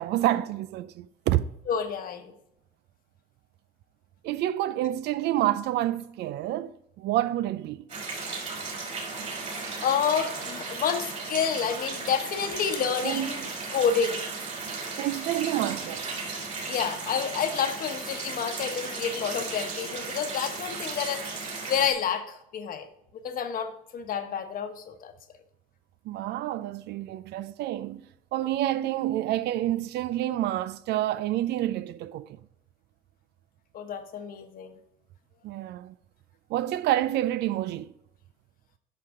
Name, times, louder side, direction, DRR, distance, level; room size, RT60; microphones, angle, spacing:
voice 1, 0.0-1.4 4.2-7.9 9.2-9.3 13.0-13.5 15.0-16.0 26.1-32.4 35.4-35.9 36.5-37.9, right 13 dB, 80° right, 0.5 m, -28 dB
voice 2, 1.7-2.3 9.8-13.4 13.7-14.2 16.7-21.3 21.7-22.9 23.1-25.1 33.7-34.8, left 7 dB, 55° left, 1.2 m, -29 dB
sound 1, 7.9-21.9, right 4 dB, 45° right, 3.3 m, -35 dB
10.0 x 6.0 x 3.7 m
cardioid pair, 110°, 17 cm